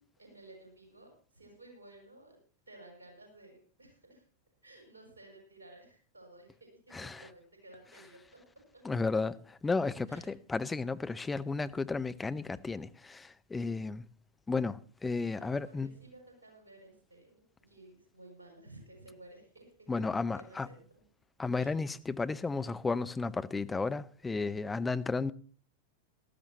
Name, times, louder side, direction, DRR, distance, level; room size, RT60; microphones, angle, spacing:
voice 1, 0.2-2.4 2.7-4.2 4.6-8.4 8.7-8.8 10.1-10.3 15.4-20.1 20.3-21.0 21.6-21.8, right 2 dB, 75° right, 6.3 m, -55 dB
voice 2, 6.9-7.3 8.8-14.1 14.5-15.9 19.9-20.7 21.4-25.3, left 4 dB, 10° left, 0.7 m, -33 dB
18.5 x 14.0 x 3.0 m
figure-of-eight pair, 90°, 0 cm